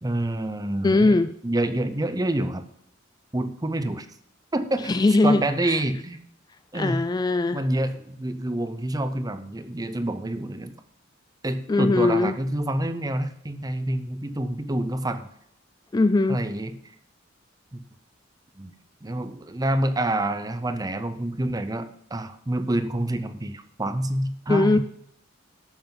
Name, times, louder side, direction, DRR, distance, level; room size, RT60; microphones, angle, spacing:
voice 1, 0.0-1.1 1.4-2.7 3.3-4.1 4.5-4.9 5.2-6.2 6.7-7.0 7.5-10.7 11.4-15.3 16.3-16.7 17.7-17.8 18.6-18.7 19.0-24.8, right 1 dB, 20° right, 10 dB, 0.7 m, -27 dB
voice 2, 0.8-1.3 4.8-5.8 6.7-7.6 11.7-12.4 15.9-16.4 24.5-24.8, left 2 dB, 20° left, 12 dB, 0.3 m, -20 dB
11.5 x 8.9 x 3.9 m, 0.71 s
head